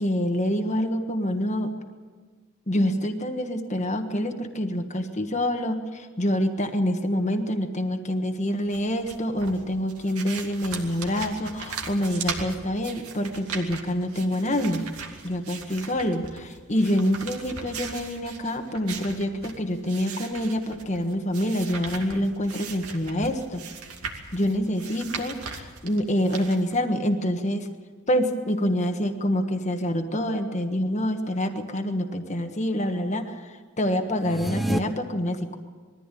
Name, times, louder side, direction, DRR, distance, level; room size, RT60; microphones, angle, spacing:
voice 1, 0.0-1.7 2.7-14.8 15.2-23.6 24.3-27.7 28.1-35.6, equal, 30° left, 5 dB, 1.4 m, -26 dB
sound 1, 8.6-26.8, right 5 dB, 85° right, 2.5 m, -39 dB
sound 2, 34.2-34.8, right 1 dB, ahead, 0.8 m, -27 dB
21.5 x 14.5 x 9.1 m, 1.5 s
head